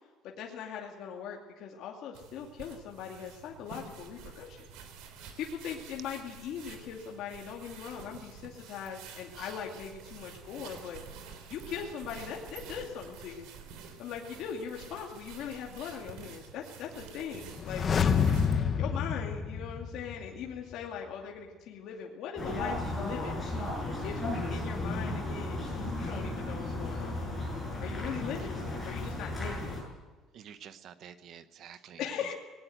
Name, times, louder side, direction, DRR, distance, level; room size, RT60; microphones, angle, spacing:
voice 1, 0.2-4.7 5.4-11.0 11.5-13.5 14.0-17.9 18.2-23.4 24.0-27.2 27.8-28.6 28.8-29.8 32.0-32.3, left 7 dB, 55° left, -1 dB, 2.4 m, -40 dB
sound 1, 2.1-18.6, right 6 dB, 90° right, 3.7 m, -49 dB
sound 2, 17.5-20.4 20.7-20.8, left 6 dB, 25° left, 1.1 m, -28 dB
sound 3, 22.4-29.8, left 2 dB, 5° left, 7.6 m, -35 dB
voice 2, 30.3-32.0, right 9 dB, 40° right, 12 dB, 0.9 m, -49 dB
19.5 x 18.5 x 7.9 m, 1.3 s
cardioid pair, 180°, 0 cm